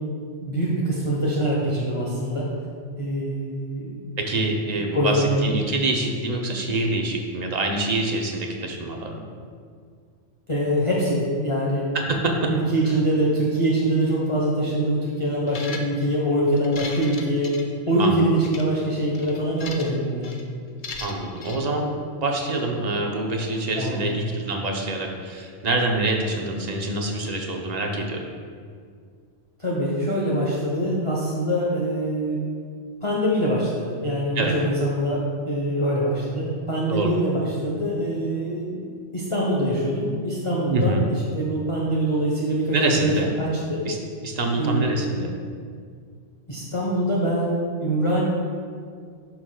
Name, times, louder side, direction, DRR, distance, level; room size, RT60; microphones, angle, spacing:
voice 1, 0.4-2.5 3.0-4.0 4.8-5.4 10.5-11.8 12.4-17.5 17.9-20.4 23.8-24.0 29.6-32.4 33.0-38.8 39.1-43.8 44.6-45.0 46.5-48.2, right 1 dB, 25° left, -5 dB, 0.9 m, -24 dB
voice 2, 4.2-9.2 11.9-12.5 18.0-18.2 21.0-21.9 22.2-28.2 34.4-34.6 36.9-37.1 40.7-41.0 42.7-43.3 43.8-44.0 44.2-45.3, right 2 dB, 40° right, 1 dB, 0.7 m, -25 dB
sound 1, 15.5-16.1 16.6-18.1 18.4-18.6 19.1-20.0 20.2-20.4 20.8-21.6, left 4 dB, 50° left, 0.6 m, -37 dB
11.5 x 5.8 x 2.3 m, 2.1 s
omnidirectional pair, 1.4 m